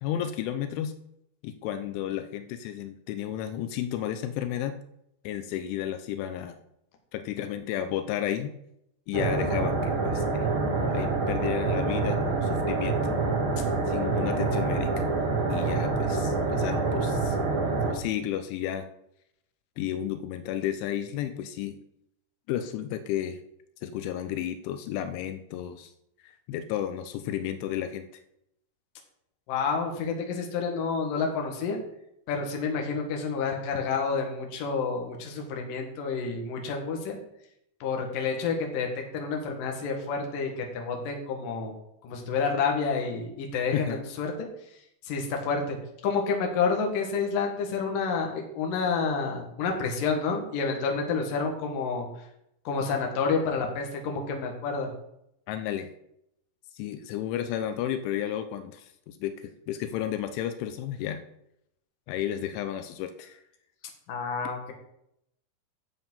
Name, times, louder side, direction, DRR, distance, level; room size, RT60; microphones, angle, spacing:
voice 1, 0.0-0.9 1.4-4.8 5.2-6.6 7.1-8.5 9.1-10.5 10.9-13.0 13.9-15.0 15.5-17.4 17.8-18.9 19.8-21.8 22.5-23.4 23.8-25.9 26.2-28.1 43.7-44.0 55.5-55.9 56.7-61.2 62.1-63.4, left 10 dB, 85° left, 9 dB, 3.1 m, -32 dB
sound 1, 9.1-17.9, right 3 dB, 55° right, 1.4 m, -26 dB
voice 2, 29.5-31.8 32.3-37.2 37.8-38.9 39.1-41.8 42.0-44.5 45.0-45.8 46.0-52.1 52.6-54.9 64.1-64.7, left 5 dB, 55° left, 2 dB, 2.9 m, -29 dB
10.5 x 7.2 x 5.6 m, 0.78 s
omnidirectional pair, 5.4 m